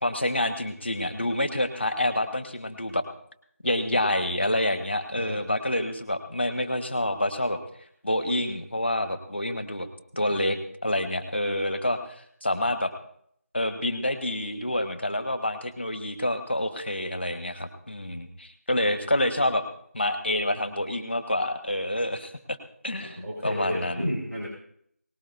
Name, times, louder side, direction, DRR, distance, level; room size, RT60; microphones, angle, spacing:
voice 1, 0.0-3.0 3.6-7.6 8.0-9.9 10.2-12.9 13.5-19.6 19.9-22.6 22.8-24.1, left 1 dB, 5° left, 8 dB, 1.1 m, -27 dB
voice 2, 10.1-10.6 23.2-24.5, equal, 70° right, -5 dB, 5.0 m, -32 dB
19.0 x 18.0 x 2.7 m, 0.66 s
figure-of-eight pair, 175°, 8 cm